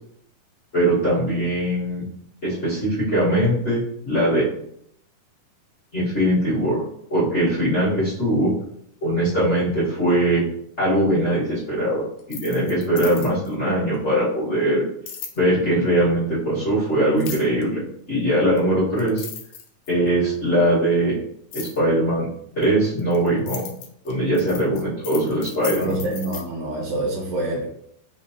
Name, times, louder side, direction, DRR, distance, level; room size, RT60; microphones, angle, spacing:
voice 1, 0.7-2.0 2.4-4.5 5.9-6.8 7.1-8.5 9.0-10.4 10.8-12.0 12.3-14.8 15.3-17.8 18.1-19.2 19.9-21.2 21.5-22.3 22.5-23.7 24.0-26.0, right 1 dB, 35° left, -13 dB, 1.1 m, -21 dB
sound 1, 12.2-13.5 15.1-15.4 17.2-17.6 18.6-18.7 19.0-20.1 21.5-21.8 22.6-26.4, left 7 dB, 85° left, 1.5 m, -36 dB
voice 2, 25.8-27.7, right 1 dB, 85° right, -2 dB, 2.2 m, -26 dB
5.0 x 3.0 x 2.7 m, 0.72 s
omnidirectional pair, 3.7 m